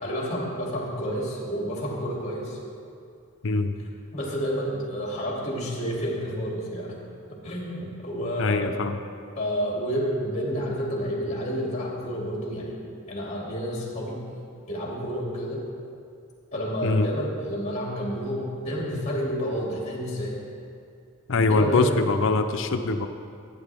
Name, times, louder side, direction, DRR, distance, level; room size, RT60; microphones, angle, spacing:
voice 1, 0.0-2.6 4.1-7.0 7.3-8.9 9.4-12.8 13.1-14.2 14.7-15.7 16.5-20.4 21.5-22.0, equal, 30° left, -3 dB, 2.4 m, -30 dB
voice 2, 3.4-3.8 8.4-9.0 16.8-17.1 21.3-23.1, left 3 dB, 60° left, 8 dB, 0.6 m, -23 dB
15.0 x 9.1 x 3.5 m, 2.4 s
head